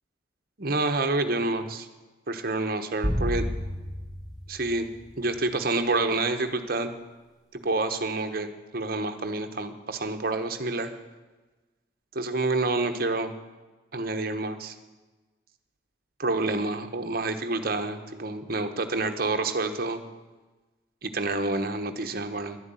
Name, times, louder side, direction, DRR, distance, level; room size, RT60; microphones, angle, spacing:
voice 1, 0.6-1.9 2.3-3.5 4.5-4.9 5.2-6.9 7.5-10.9 12.1-13.3 13.9-14.7 16.2-20.0 21.0-22.6, right 2 dB, 50° right, 7 dB, 1.1 m, -28 dB
sound 1, 3.0-5.5, equal, ahead, 3.5 m, -31 dB
11.0 x 11.0 x 9.0 m, 1.2 s
head